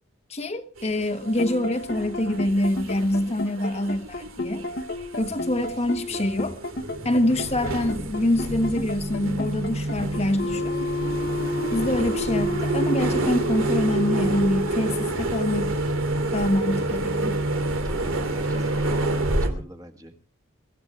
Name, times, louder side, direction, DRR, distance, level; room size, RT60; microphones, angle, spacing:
voice 1, 0.3-4.6 5.2-6.6 7.0-10.8 11.7-15.7 16.3-17.4, left 1 dB, 30° left, 1.2 m, -25 dB
sound 1, 0.8-19.5, right 2 dB, 85° right, 2.4 m, -30 dB
sound 2, 1.2-15.2, left 2 dB, 60° left, 1.3 m, -32 dB
sound 3, 6.9-19.7, right 1 dB, 65° right, 3.4 m, -32 dB
voice 2, 17.8-20.2, equal, 20° right, 1.8 m, -42 dB
24.0 x 14.0 x 3.3 m
head